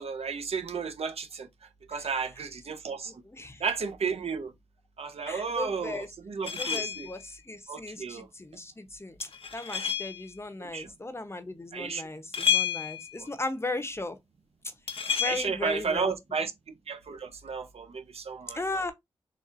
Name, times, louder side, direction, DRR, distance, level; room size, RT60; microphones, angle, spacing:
voice 1, 0.0-1.5 1.9-3.1 3.6-4.5 5.0-7.1 7.7-8.3 10.7-10.9 11.7-12.0 13.2-13.3 15.2-16.5 16.9-18.8, right 5 dB, 70° right, 0.7 m, -33 dB
voice 2, 3.2-3.6 5.3-6.1 6.6-14.2 15.2-16.1 18.5-18.9, left 2 dB, 25° left, 0.8 m, -36 dB
sound 1, 6.4-7.2 9.2-10.3 12.3-13.2 14.9-15.4, left 8 dB, 60° left, 0.7 m, -30 dB
4.0 x 2.5 x 2.5 m
cardioid pair, 45°, 11 cm